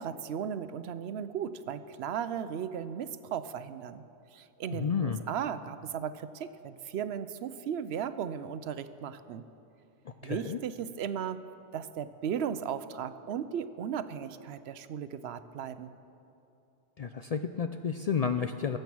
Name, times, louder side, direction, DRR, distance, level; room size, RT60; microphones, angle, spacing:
voice 1, 0.0-4.0 4.3-9.4 10.2-11.4 11.7-15.9, right 8 dB, 75° right, 12 dB, 0.9 m, -36 dB
voice 2, 4.7-5.2 10.1-10.6 17.0-18.8, left 6 dB, 55° left, 8 dB, 0.4 m, -31 dB
22.0 x 7.9 x 6.1 m, 2.8 s
omnidirectional pair, 1.1 m